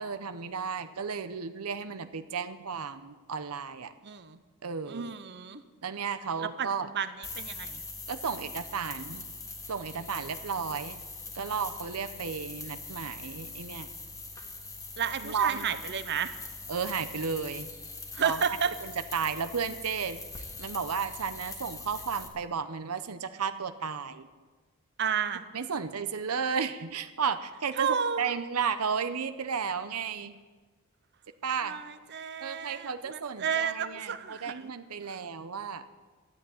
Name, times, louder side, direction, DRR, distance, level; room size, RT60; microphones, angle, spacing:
voice 1, 0.0-3.9 4.6-5.2 5.8-6.9 8.1-9.3 9.7-11.0 11.4-13.9 15.2-15.7 16.7-17.7 18.2-18.4 18.8-20.2 20.6-24.3 25.5-30.4 31.4-31.8 32.4-35.8, right 6 dB, 90° right, 11 dB, 0.8 m, -33 dB
voice 2, 4.0-4.4 4.9-5.6 6.4-6.7 6.9-7.8 15.0-16.3 18.1-18.7 25.0-25.4 27.8-28.4 31.6-34.7 35.1-35.2, right 7 dB, 50° right, 12 dB, 0.8 m, -32 dB
sound 1, 7.2-22.3, left 3 dB, 15° left, 1.6 m, -42 dB
13.0 x 8.6 x 9.3 m, 1.3 s
head